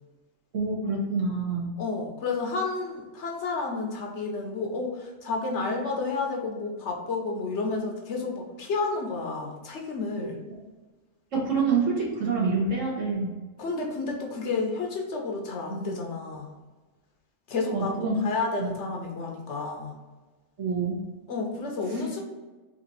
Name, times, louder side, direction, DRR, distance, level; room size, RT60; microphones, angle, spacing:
voice 1, 0.5-1.7 11.3-13.3 17.7-18.2 18.6-18.7 20.6-21.0, right 4 dB, 70° right, -4 dB, 1.6 m, -26 dB
voice 2, 1.8-10.4 13.6-16.5 17.5-20.0 21.3-22.2, left 3 dB, 65° left, 1 dB, 1.0 m, -31 dB
4.1 x 2.8 x 4.0 m, 1.2 s
omnidirectional pair, 1.4 m